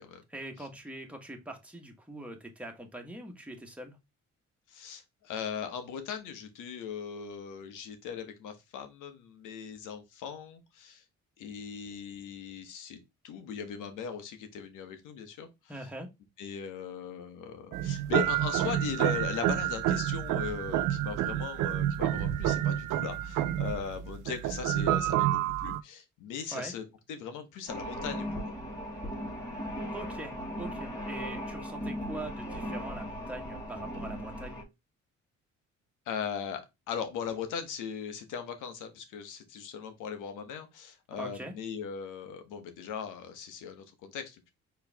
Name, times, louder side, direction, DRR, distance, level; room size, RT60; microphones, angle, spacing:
voice 1, 0.3-4.0 15.7-16.1 26.5-26.7 29.9-30.3 30.6-34.6 41.2-41.5, right 1 dB, 5° right, 2 dB, 1.4 m, -42 dB
voice 2, 4.7-11.0 11.4-13.0 13.2-15.5 16.4-26.8 27.1-28.7 36.1-44.5, left 7 dB, 90° left, 8 dB, 1.1 m, -39 dB
sound 1, 17.7-25.8, right 12 dB, 80° right, 0.6 m, -29 dB
sound 2, 27.7-34.6, equal, 10° left, 2.7 m, -37 dB
4.6 x 3.2 x 3.4 m, 0.22 s
cardioid pair, 90°, 30 cm